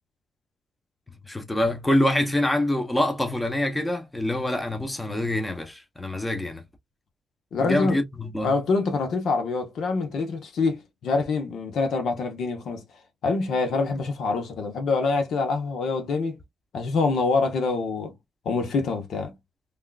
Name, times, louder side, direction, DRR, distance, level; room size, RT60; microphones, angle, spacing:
voice 1, 1.1-6.6 7.6-8.6, left 1 dB, 10° left, 0.9 m, -25 dB
voice 2, 7.5-8.0 8.4-12.8 13.2-16.4 16.7-18.1 18.4-19.3, left 4 dB, 65° left, 1.0 m, -25 dB
3.5 x 2.5 x 2.4 m
cardioid pair, 90°, 0 cm